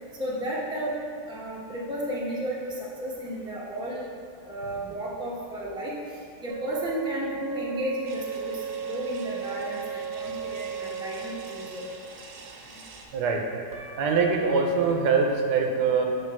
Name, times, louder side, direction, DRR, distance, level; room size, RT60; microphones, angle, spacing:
voice 1, 0.2-1.0 1.3-4.1 4.4-6.0 6.4-11.9, equal, 5° right, -6 dB, 0.6 m, -33 dB
sound 1, 6.5-12.0 13.7-14.4, right 7 dB, 50° right, 0.9 m, -35 dB
sound 2, 8.1-13.1, right 3 dB, 70° right, 1.1 m, -47 dB
voice 2, 13.1-13.4 14.0-16.1, right 5 dB, 90° right, 2 dB, 1.3 m, -23 dB
6.8 x 3.1 x 5.9 m, 2.3 s
omnidirectional pair, 1.8 m